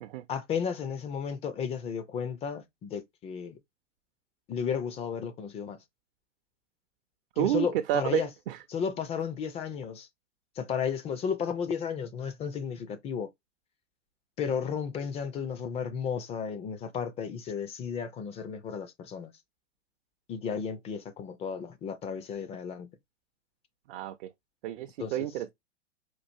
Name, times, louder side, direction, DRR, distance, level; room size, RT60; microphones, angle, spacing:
voice 1, 0.3-3.6 4.5-5.8 7.4-8.3 8.7-10.1 10.6-13.3 14.4-19.3 20.3-22.9 25.0-25.2, left 7 dB, 15° left, 0.4 m, -33 dB
voice 2, 7.4-8.6 23.9-24.3 24.6-25.5, right 13 dB, 50° right, 0.5 m, -30 dB
4.5 x 2.4 x 2.6 m
hypercardioid pair, 110°, 36 cm